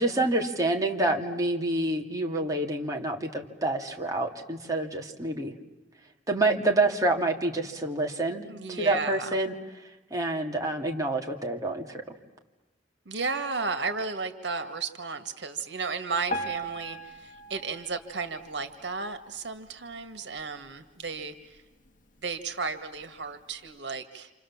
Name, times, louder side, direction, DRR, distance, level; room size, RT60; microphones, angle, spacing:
voice 1, 0.0-5.5 6.3-9.5 10.1-12.0, right 2 dB, 20° right, 1 dB, 2.3 m, -27 dB
voice 2, 8.5-9.4 13.1-21.6 22.2-24.3, right 4 dB, 80° right, 9 dB, 1.9 m, -34 dB
Piano, 16.3-19.4 19.9-20.1 20.4-20.5 21.2-21.3 21.9-22.0, right 1 dB, 50° left, 1.8 m, -38 dB
28.0 x 28.0 x 7.3 m, 1.2 s
head